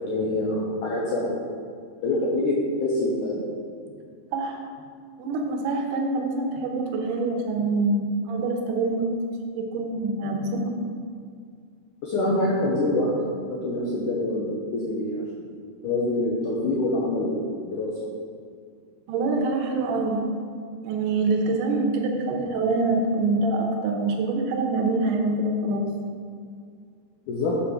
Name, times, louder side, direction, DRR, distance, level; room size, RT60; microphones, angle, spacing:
voice 1, 0.0-1.4 2.0-3.4 12.0-15.2 15.8-17.9 27.3-27.5, left 2 dB, 85° left, -5 dB, 1.8 m, -25 dB
voice 2, 4.3-4.6 5.2-9.1 9.6-10.9 19.1-20.2 20.8-25.9, right 3 dB, 80° right, 2 dB, 2.7 m, -25 dB
7.0 x 5.2 x 6.4 m, 2.1 s
omnidirectional pair, 5.0 m